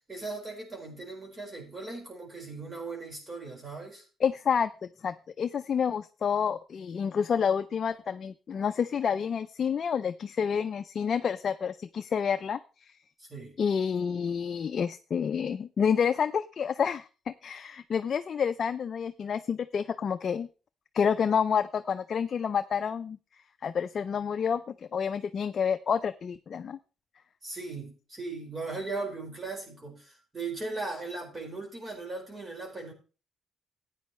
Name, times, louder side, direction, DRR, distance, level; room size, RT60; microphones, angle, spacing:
voice 1, 0.1-4.0 13.2-13.6 27.4-32.9, right 3 dB, 30° right, 4.6 m, -38 dB
voice 2, 4.2-4.7 5.0-12.9 13.6-20.5 20.9-23.2 23.6-24.6 24.9-26.8, left 7 dB, 50° left, 0.4 m, -29 dB
13.5 x 9.1 x 3.1 m
cardioid pair, 90°, 0 cm